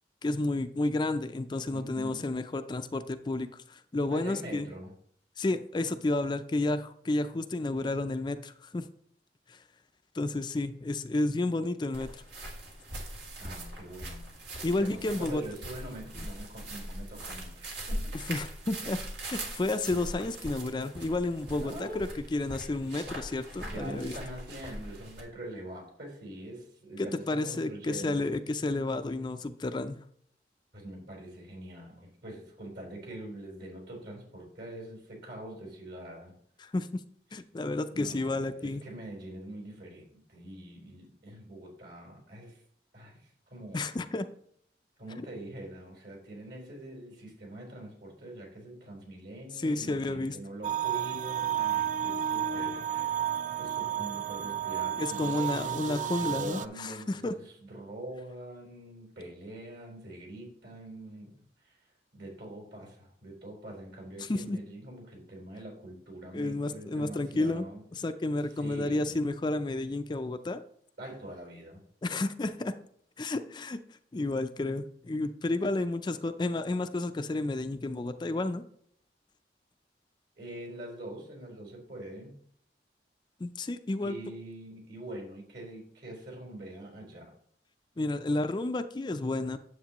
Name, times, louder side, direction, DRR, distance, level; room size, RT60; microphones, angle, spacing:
voice 1, 0.2-4.7 5.4-8.9 9.5-9.6 10.1-12.1 14.6-15.4 16.2-16.3 18.3-19.0 19.3-24.1 27.0-30.0 36.6-37.0 37.3-38.8 43.7-44.3 49.6-50.4 55.0-57.4 64.2-64.6 66.3-67.7 67.9-70.6 72.0-72.7 73.2-73.8 74.1-78.6 83.4-84.2 88.0-89.6, left 2 dB, 25° left, 9 dB, 0.4 m, -31 dB
voice 2, 1.7-2.3 4.1-4.9 13.4-14.3 14.7-18.1 21.6-22.1 23.6-28.3 30.7-36.3 37.9-42.6 42.9-43.9 45.0-53.3 53.6-61.3 61.6-61.8 62.1-67.8 68.6-69.2 71.0-71.8 80.4-82.4 84.0-87.3, right 1 dB, 65° right, 0 dB, 4.1 m, -44 dB
sound 1, 11.9-25.2, right 1 dB, 85° right, 2.2 m, -41 dB
sound 2, 50.6-56.7, right 10 dB, 45° right, 0.4 m, -32 dB
9.3 x 7.9 x 3.0 m, 0.66 s
head